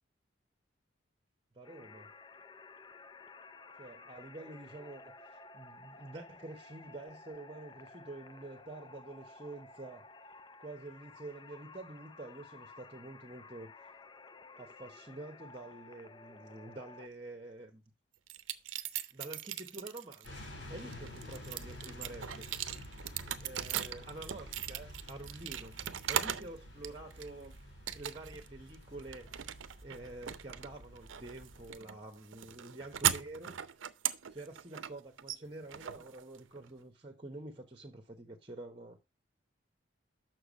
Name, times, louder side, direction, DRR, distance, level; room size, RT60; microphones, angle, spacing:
voice 1, 1.5-2.1 3.8-5.1 5.5-10.1 10.6-13.7 14.6-17.8 19.1-20.4 20.7-22.7 23.4-27.6 27.9-29.3 29.8-33.6 34.3-39.0, right 2 dB, 25° right, 1.0 m, -48 dB
sound 1, 1.6-17.1, left 3 dB, 25° left, 0.5 m, -54 dB
sound 2, 18.3-20.3 20.8-26.5 26.8-27.5 27.9-28.5 28.7-36.7, right 10 dB, 85° right, 0.6 m, -38 dB
sound 3, 20.2-31.7, left 1 dB, 65° left, 4.0 m, -50 dB
6.7 x 6.2 x 5.1 m
head